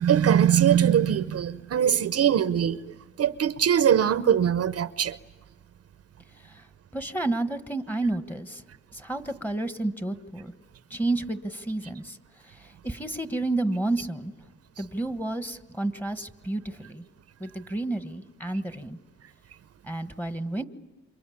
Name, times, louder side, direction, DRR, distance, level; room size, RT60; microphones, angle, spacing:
voice 1, 0.0-2.8 3.2-5.2, right 9 dB, 55° right, 0.8 m, -22 dB
voice 2, 6.9-8.6 8.9-10.5 10.9-12.2 12.4-14.3 14.8-17.0 17.4-19.0 19.8-20.6, right 2 dB, 5° left, 1.4 m, -31 dB
28.0 x 24.0 x 8.6 m
cardioid pair, 90°, 30 cm